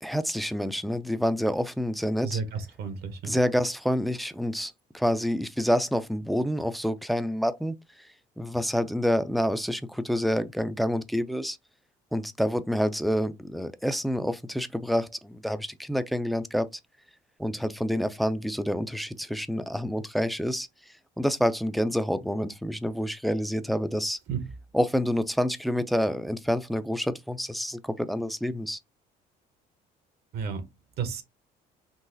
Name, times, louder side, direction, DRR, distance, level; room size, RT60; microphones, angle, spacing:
voice 1, 0.0-2.4 3.2-11.6 12.1-16.7 17.4-24.2 24.7-28.8, equal, ahead, 0.3 m, -28 dB
voice 2, 2.2-3.4 24.3-24.4 30.3-30.7 31.0-31.2, right 5 dB, 70° right, 0.8 m, -32 dB
3.8 x 2.4 x 2.6 m
cardioid pair, 110°, 17 cm